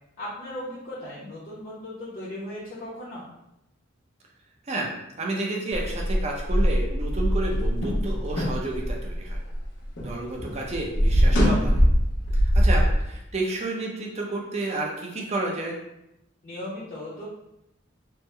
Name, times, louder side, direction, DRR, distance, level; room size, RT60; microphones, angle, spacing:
voice 1, 0.2-3.3 16.4-17.3, left 1 dB, 45° left, -8 dB, 0.7 m, -37 dB
voice 2, 4.7-9.4 10.0-11.8 12.3-15.8, right 2 dB, 35° right, -1 dB, 0.6 m, -31 dB
sound 1, 5.7-10.1 10.4-12.9, equal, 70° left, 0.9 m, -22 dB
3.4 x 2.1 x 3.2 m, 0.86 s
head